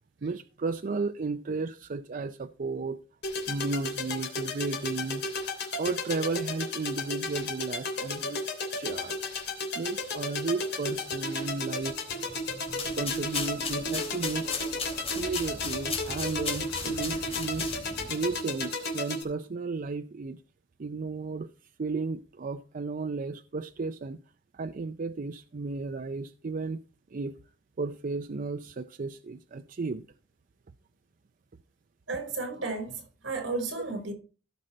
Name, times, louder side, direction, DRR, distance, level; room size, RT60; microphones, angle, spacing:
voice 1, 0.2-3.0 3.5-5.2 5.8-8.4 8.7-9.3 9.7-12.0 12.9-14.5 15.1-17.7 18.1-20.4 20.8-21.5 21.8-24.2 24.5-26.8 27.1-27.3 27.8-30.0, right 3 dB, 45° right, 0.5 m, -34 dB
sound 1, 3.2-19.2, left 2 dB, 60° left, 3.1 m, -34 dB
sound 2, 11.5-19.0, equal, 10° left, 1.2 m, -47 dB
sound 3, 12.7-18.0, left 5 dB, 30° left, 3.0 m, -36 dB
voice 2, 32.1-34.1, right 3 dB, 75° right, 4.5 m, -33 dB
16.0 x 6.5 x 4.4 m
head